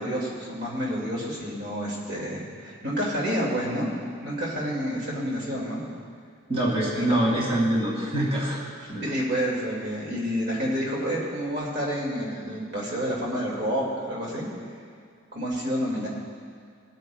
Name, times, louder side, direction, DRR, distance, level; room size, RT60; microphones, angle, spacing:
voice 1, 0.0-3.9 4.2-5.8 6.9-7.1 9.0-14.4 15.3-16.1, equal, 50° right, -4 dB, 2.2 m, -29 dB
voice 2, 6.5-8.6 8.9-9.1, right 1 dB, 25° right, -5 dB, 2.1 m, -24 dB
24.0 x 9.0 x 2.3 m, 2.1 s
head